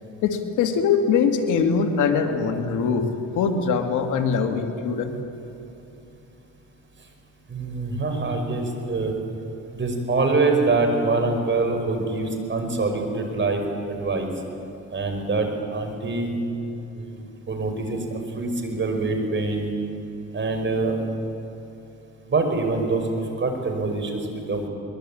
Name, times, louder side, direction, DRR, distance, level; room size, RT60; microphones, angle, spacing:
voice 1, 0.2-5.1, left 6 dB, 85° left, 5 dB, 2.4 m, -22 dB
voice 2, 7.5-9.1 9.7-13.6 13.9-14.3 14.9-16.3 16.9-19.7 20.3-21.0 22.3-23.1 23.4-24.2 24.5-24.7, right 3 dB, 40° right, 4 dB, 5.4 m, -25 dB
23.0 x 21.5 x 8.6 m, 3.0 s
cardioid pair, 90°, 30 cm